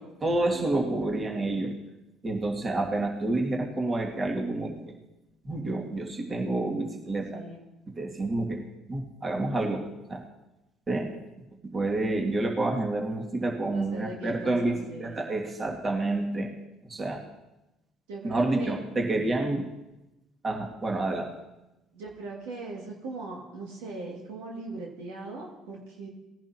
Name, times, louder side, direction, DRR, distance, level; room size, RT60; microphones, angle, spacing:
voice 1, 0.2-1.8 2.2-4.9 5.4-7.4 7.9-8.6 8.9-10.2 10.9-11.1 11.6-16.5 16.8-17.2 18.2-19.7 20.4-21.3, right 2 dB, 30° right, 1 dB, 2.2 m, -29 dB
voice 2, 2.6-2.9 7.3-7.7 13.7-15.3 18.1-18.8 21.9-26.1, right 3 dB, 75° right, -1 dB, 2.1 m, -40 dB
19.0 x 10.5 x 2.9 m, 0.98 s
hypercardioid pair, 60°, 0 cm